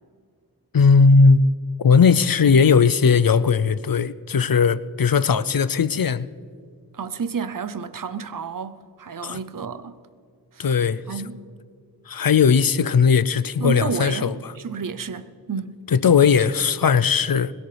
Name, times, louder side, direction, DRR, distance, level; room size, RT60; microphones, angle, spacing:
voice 1, 0.7-1.5 1.8-6.3 9.2-9.4 10.6-11.0 12.1-14.5 15.9-17.5, left 5 dB, 60° left, 0.5 m, -18 dB
voice 2, 6.9-10.0 10.5-10.7 11.1-11.4 13.6-15.7, right 6 dB, 55° right, 0.7 m, -31 dB
21.5 x 17.0 x 3.3 m
wide cardioid pair, 40°, 39 cm